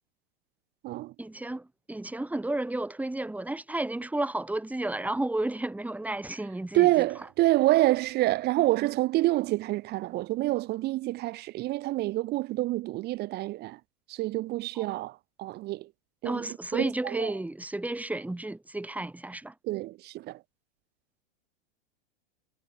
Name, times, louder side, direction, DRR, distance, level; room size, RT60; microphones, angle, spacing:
voice 1, 1.2-7.1 14.8-14.9 16.2-19.5, right 2 dB, 5° right, 3.5 m, -32 dB
voice 2, 6.7-13.8 14.1-15.9 16.2-17.3 19.6-20.4, right 17 dB, 30° right, 0.7 m, -27 dB
hypercardioid pair, 120°, 32 cm